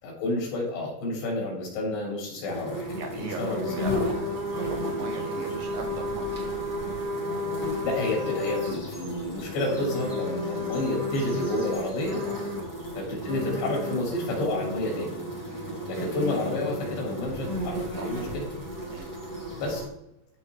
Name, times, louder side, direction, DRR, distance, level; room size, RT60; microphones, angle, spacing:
voice 1, 0.0-4.1 7.8-12.2 13.0-15.1 15.9-18.4 19.6-19.8, left 1 dB, 85° left, -2 dB, 5.5 m, -30 dB
sound 1, 2.5-19.9, left 1 dB, 15° left, 0.6 m, -32 dB
voice 2, 2.9-6.4 12.2-12.8 15.6-15.8 18.0-18.3 18.8-19.1, right 3 dB, 70° right, 3 dB, 2.3 m, -40 dB
14.0 x 5.1 x 3.5 m, 0.82 s
omnidirectional pair, 4.8 m